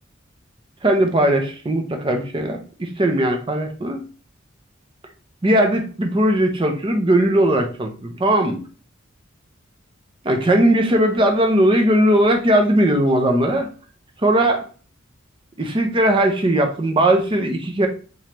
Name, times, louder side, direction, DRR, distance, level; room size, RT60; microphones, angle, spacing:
voice 1, 0.8-4.0 5.4-8.6 10.2-13.7 14.2-14.6 15.6-17.9, right 1 dB, 25° right, 4 dB, 0.6 m, -18 dB
3.7 x 2.8 x 3.0 m, 0.38 s
head